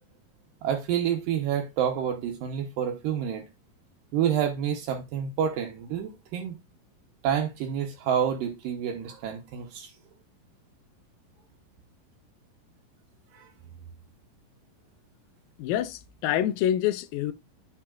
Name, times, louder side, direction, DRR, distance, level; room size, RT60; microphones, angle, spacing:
voice 1, 0.6-3.5 4.1-6.6 7.2-9.9 13.3-13.5, right 9 dB, 75° right, 2.5 m, -28 dB
voice 2, 15.6-17.3, left 11 dB, 80° left, 2.4 m, -26 dB
8.9 x 7.4 x 2.3 m
omnidirectional pair, 4.1 m